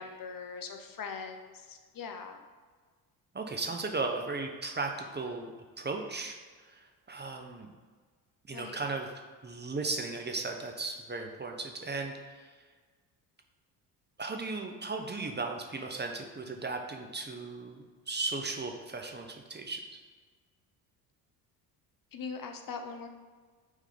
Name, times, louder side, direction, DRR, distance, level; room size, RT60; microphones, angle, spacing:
voice 1, 0.0-2.4 8.5-8.8 22.1-23.1, left 5 dB, 45° left, 5 dB, 0.9 m, -41 dB
voice 2, 3.3-6.4 6.7-7.7 8.5-9.1 9.4-12.5 14.2-19.8, right 3 dB, 20° right, 3 dB, 0.9 m, -36 dB
6.3 x 3.7 x 5.1 m, 1.5 s
hypercardioid pair, 60°, 47 cm